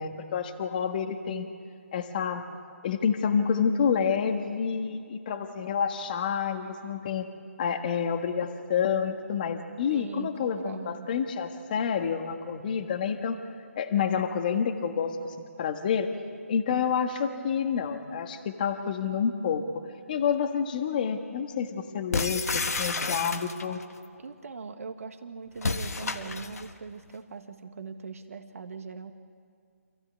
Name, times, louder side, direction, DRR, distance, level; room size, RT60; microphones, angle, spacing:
voice 1, 0.0-1.5 1.9-2.4 2.8-7.3 7.6-13.4 13.7-16.1 16.5-19.8 20.1-23.8, left 7 dB, 35° left, 5 dB, 1.6 m, -28 dB
voice 2, 9.9-11.1 24.2-29.1, right 5 dB, 65° right, 7 dB, 1.6 m, -41 dB
sound 1, 22.1-23.8 25.6-26.7, left 4 dB, 80° left, 1.4 m, -30 dB
27.5 x 16.0 x 9.6 m, 2.2 s
hypercardioid pair, 160°, 8 cm